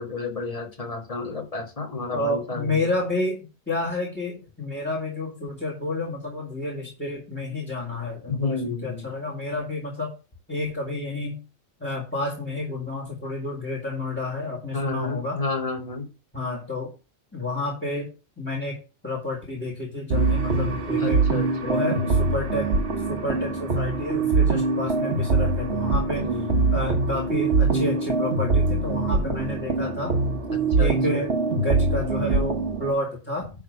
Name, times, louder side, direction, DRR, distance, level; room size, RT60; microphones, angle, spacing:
voice 1, 0.0-2.9 8.3-9.1 14.7-16.0 21.0-21.8 26.1-26.7 30.5-31.2, left 3 dB, 25° left, 3 dB, 1.6 m, -31 dB
voice 2, 2.1-10.1 10.5-11.4 11.8-15.4 16.3-16.9 17.3-18.1 18.4-18.8 19.0-21.2 21.6-22.7 23.1-26.4 26.7-30.2 30.8-33.5, left 2 dB, 10° left, 0 dB, 2.1 m, -30 dB
sound 1, 20.1-32.9, right 3 dB, 55° right, 1.4 m, -23 dB
10.5 x 3.6 x 6.5 m, 0.31 s
omnidirectional pair, 1.4 m